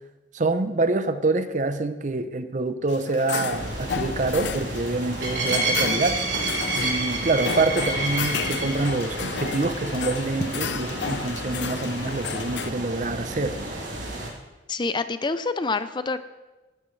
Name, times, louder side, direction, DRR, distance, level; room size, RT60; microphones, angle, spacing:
voice 1, 0.3-13.6, right 3 dB, 45° right, 0.7 m, -26 dB
sound 1, 2.9-12.7, left 6 dB, 70° left, 0.6 m, -33 dB
sound 2, 3.5-14.3, right 2 dB, 80° right, 3.5 m, -30 dB
voice 2, 14.7-16.2, left 3 dB, 25° left, 0.5 m, -26 dB
17.0 x 12.5 x 3.3 m
head